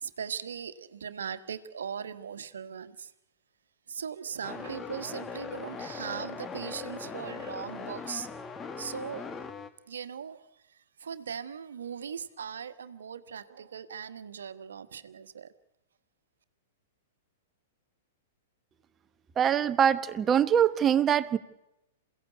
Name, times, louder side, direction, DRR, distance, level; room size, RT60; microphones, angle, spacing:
voice 1, 0.0-3.1 3.9-8.3 8.8-9.2 9.9-10.5 11.0-15.5, right 7 dB, 70° right, 12 dB, 1.4 m, -39 dB
sound 1, 4.4-9.7, left 5 dB, 20° left, 1.8 m, -40 dB
voice 2, 19.4-21.4, right 9 dB, 25° right, 13 dB, 1.1 m, -23 dB
28.0 x 17.0 x 8.2 m, 0.95 s
figure-of-eight pair, 105°, 0 cm